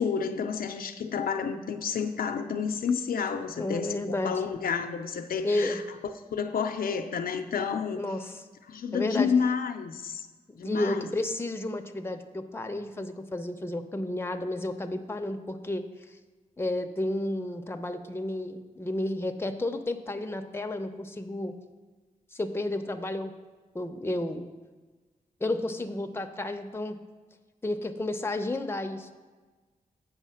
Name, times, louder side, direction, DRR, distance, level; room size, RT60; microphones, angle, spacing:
voice 1, 0.0-5.8 6.3-8.0 8.7-10.3 10.6-11.1, left 6 dB, 85° left, 6 dB, 0.5 m, -30 dB
voice 2, 3.6-4.4 5.4-5.8 8.0-8.3 8.9-9.3 10.5-15.8 16.6-21.5 22.3-23.3 23.7-24.5 25.4-27.0 27.6-29.1, left 1 dB, 15° left, 6 dB, 0.6 m, -31 dB
8.3 x 5.5 x 5.6 m, 1.3 s
cardioid pair, 75°, 15 cm